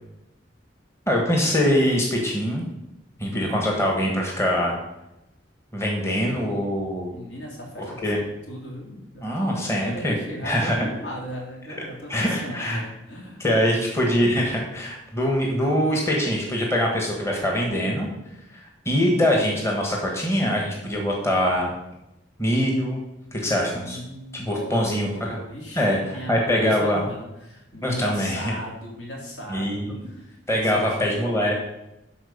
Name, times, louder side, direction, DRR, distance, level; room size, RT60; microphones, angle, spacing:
voice 1, 1.1-2.7 3.2-4.8 5.7-7.1 7.8-8.2 9.2-10.1 10.4-10.9 12.1-12.8 13.4-18.1 18.8-21.7 22.4-23.0 23.3-24.0 24.3-25.4 25.7-27.0 27.8-28.5 29.5-29.9 30.5-31.5, equal, 15° left, -1 dB, 1.3 m, -23 dB
voice 2, 3.2-4.2 7.1-13.4 23.7-31.1, equal, 70° left, -2 dB, 2.8 m, -37 dB
12.0 x 4.3 x 5.4 m, 0.91 s
head